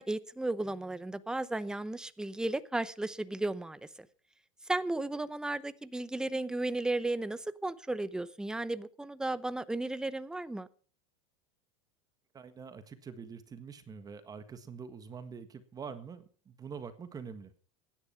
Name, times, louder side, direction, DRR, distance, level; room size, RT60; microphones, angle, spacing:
voice 1, 0.0-3.8 4.7-10.7, right 2 dB, 5° right, 15 dB, 0.8 m, -34 dB
voice 2, 12.3-17.5, right 6 dB, 20° right, 11 dB, 1.6 m, -45 dB
16.0 x 10.5 x 5.7 m, 0.42 s
supercardioid pair, 130°, 17 cm